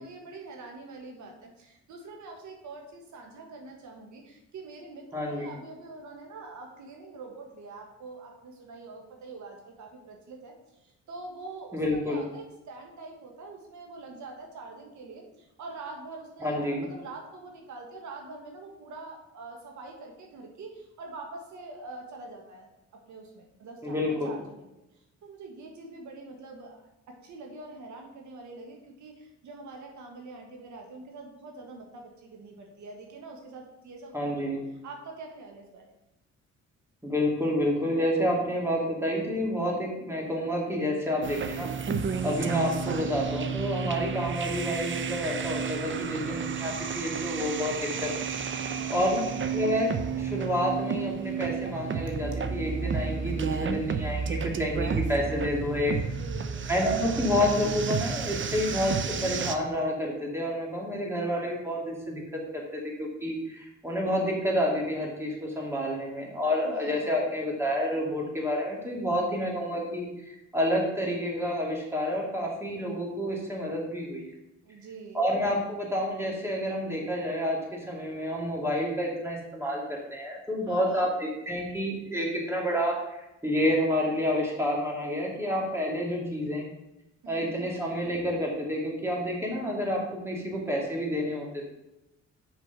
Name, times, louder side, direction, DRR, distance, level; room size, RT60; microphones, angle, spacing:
voice 1, 0.0-22.7 22.9-34.5 34.8-35.9 48.6-49.0 56.0-56.7 66.6-67.1 74.6-75.2 80.7-81.1 87.2-87.8, right 3 dB, 70° right, 1 dB, 1.5 m, -44 dB
voice 2, 5.1-5.5 11.7-12.2 16.4-16.9 23.8-24.4 34.1-34.6 37.0-41.7 42.2-48.1 48.9-49.2 49.5-56.0 56.7-62.2 62.5-74.3 75.1-86.7 87.3-91.7, equal, 10° right, -2 dB, 2.5 m, -29 dB
sound 1, 41.2-59.6, right 6 dB, 40° right, 0.7 m, -31 dB
6.3 x 5.0 x 5.9 m, 0.92 s
cardioid pair, 90°, 30 cm